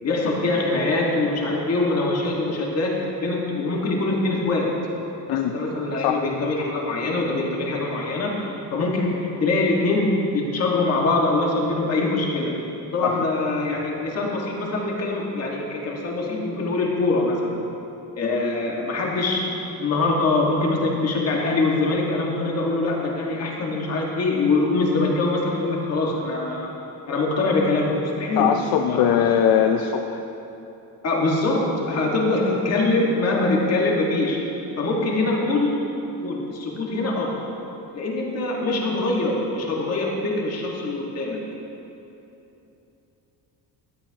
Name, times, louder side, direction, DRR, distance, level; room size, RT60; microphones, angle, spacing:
voice 1, 0.0-4.8 5.3-12.6 12.9-17.6 18.2-19.4 19.8-26.7 27.1-28.6 28.8-29.2 31.0-34.4 34.8-35.8 36.2-37.5 37.9-41.5, left 2 dB, 40° left, -2 dB, 1.6 m, -23 dB
voice 2, 28.4-30.2, left 8 dB, 70° left, 5 dB, 0.6 m, -21 dB
14.0 x 10.5 x 2.9 m, 3.0 s
cardioid pair, 160°, 37 cm